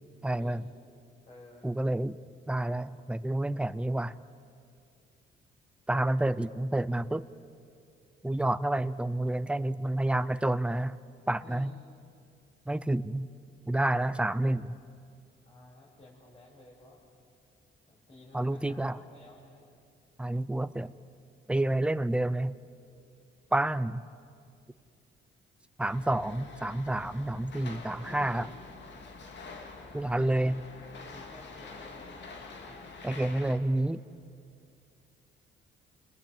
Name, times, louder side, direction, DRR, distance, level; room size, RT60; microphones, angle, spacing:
voice 1, 0.2-0.6 1.6-2.2 2.5-4.1 5.9-7.2 8.2-11.0 11.3-11.7 12.7-13.3 13.7-14.8 18.3-19.0 20.2-20.9 21.5-22.5 23.5-24.0 25.8-28.5 29.9-30.6 33.0-34.0, right 1 dB, 5° right, 15 dB, 0.6 m, -29 dB
voice 2, 1.3-1.7 11.4-11.7 15.4-17.0 17.9-19.7 28.0-28.4 31.0-32.8, left 1 dB, 30° left, -5 dB, 6.3 m, -53 dB
sound 1, 25.8-33.5, left 4 dB, 65° left, 2.9 m, -46 dB
28.5 x 21.5 x 7.8 m, 2.5 s
cardioid pair, 90°, 20 cm